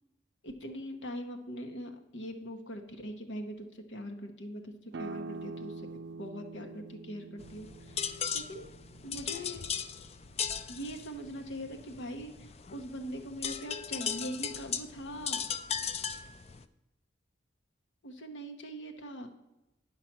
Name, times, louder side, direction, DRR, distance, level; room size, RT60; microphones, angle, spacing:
voice 1, 0.4-8.7 9.0-9.6 10.7-15.5 18.0-19.3, equal, 75° left, 5 dB, 1.0 m, -42 dB
sound 1, 4.9-10.3, right 3 dB, 65° right, 0.5 m, -45 dB
sound 2, 7.4-16.6, left 7 dB, 30° left, 0.4 m, -37 dB
9.9 x 5.7 x 5.9 m, 0.96 s
head